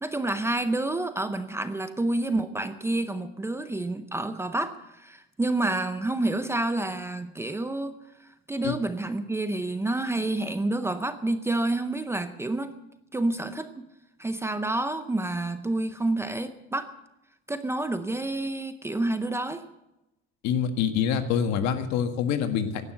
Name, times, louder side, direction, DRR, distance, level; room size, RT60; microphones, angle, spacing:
voice 1, 0.0-8.0 8.5-12.8 13.1-13.9 14.2-16.9 17.5-19.6, right 2 dB, 10° right, 10 dB, 0.6 m, -29 dB
voice 2, 20.4-22.9, left 7 dB, 65° left, 8 dB, 1.8 m, -26 dB
16.0 x 11.5 x 7.9 m, 0.92 s
cardioid pair, 165°, 30 cm